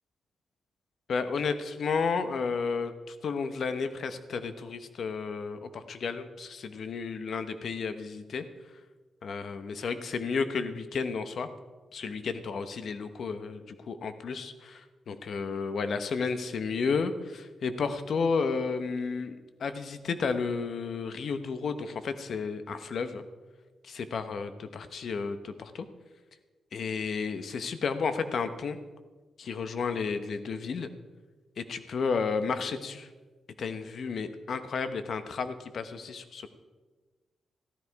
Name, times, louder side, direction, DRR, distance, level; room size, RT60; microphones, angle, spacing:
voice 1, 1.1-8.4 9.2-11.5 11.9-23.2 23.8-25.9 26.7-28.8 29.4-30.9 31.6-33.1 33.6-36.5, left 5 dB, 55° left, 10 dB, 1.0 m, -32 dB
14.5 x 13.0 x 4.7 m, 1.3 s
wide cardioid pair, 130°, 0 cm